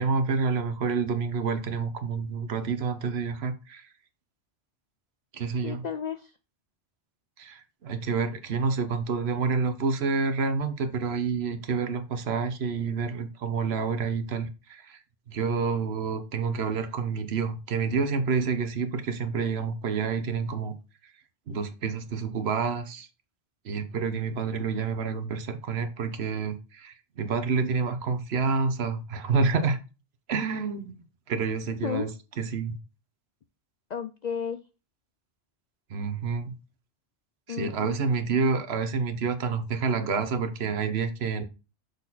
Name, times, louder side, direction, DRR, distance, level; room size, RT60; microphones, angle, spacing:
voice 1, 0.0-3.9 5.3-5.8 7.4-15.0 15.3-20.8 21.5-23.1 23.6-29.8 30.3-32.1 32.4-32.8 35.9-36.5 37.5-41.4, right 5 dB, 65° right, 10 dB, 1.0 m, -28 dB
voice 2, 5.6-6.3 31.8-32.0 33.9-34.6 37.5-38.0, left 7 dB, 60° left, 9 dB, 0.4 m, -32 dB
6.6 x 4.1 x 4.0 m, 0.31 s
omnidirectional pair, 1.2 m